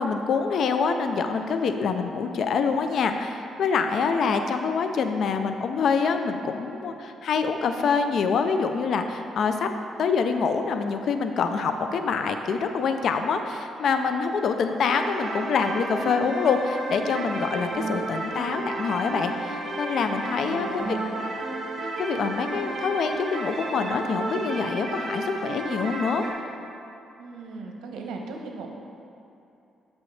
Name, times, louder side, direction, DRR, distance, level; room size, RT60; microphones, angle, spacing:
voice 1, 0.0-9.7 10.0-21.0 22.0-26.2, left 5 dB, 65° left, 7 dB, 0.4 m, -25 dB
sound 1, 14.9-26.3, right 2 dB, 55° right, 1.6 m, -32 dB
voice 2, 20.1-21.2 27.2-28.7, right 3 dB, 80° right, 2 dB, 0.9 m, -39 dB
8.3 x 6.3 x 3.2 m, 2.8 s
cardioid pair, 90°, 0 cm